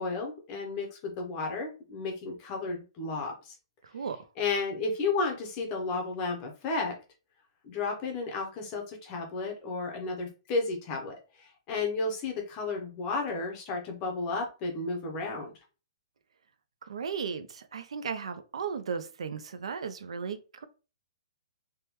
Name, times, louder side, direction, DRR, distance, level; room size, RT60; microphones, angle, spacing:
voice 1, 0.0-3.5 4.4-6.9 7.6-15.5, left 3 dB, 20° left, 0.6 m, -33 dB
voice 2, 16.9-20.7, right 6 dB, 90° right, 0.5 m, -35 dB
3.4 x 2.1 x 2.9 m
hypercardioid pair, 180°, 3 cm